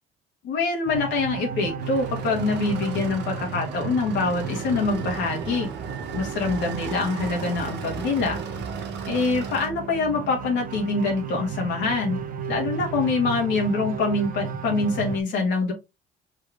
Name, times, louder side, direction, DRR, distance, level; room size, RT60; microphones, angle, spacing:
voice 1, 0.4-5.7 6.1-8.4 9.1-12.2 12.5-15.7, left 3 dB, 70° left, 0 dB, 1.8 m, -25 dB
sound 1, 0.9-15.2, right 6 dB, 45° right, 0.9 m, -34 dB
Old Diesel Train Departure, 1.8-9.7, right 5 dB, 65° right, 1.3 m, -36 dB
4.6 x 3.2 x 3.5 m, 0.24 s
supercardioid pair, 75°, 19 cm